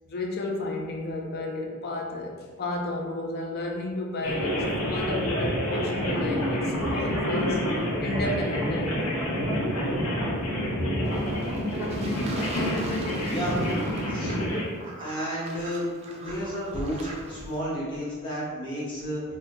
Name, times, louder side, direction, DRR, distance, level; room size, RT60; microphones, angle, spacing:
voice 1, 0.1-9.3 10.8-10.9, left 2 dB, 45° left, 0 dB, 0.5 m, -32 dB
sound 1, 4.2-14.6, equal, 85° left, 0.8 m, -28 dB
Fowl / Bird / Water, 11.0-17.6, right 1 dB, 30° right, 0.4 m, -41 dB
voice 2, 13.2-13.6 14.1-14.4 15.0-15.8 16.1-19.2, equal, 20° left, -9 dB, 1.0 m, -32 dB
3.7 x 2.2 x 2.9 m, 1.5 s
head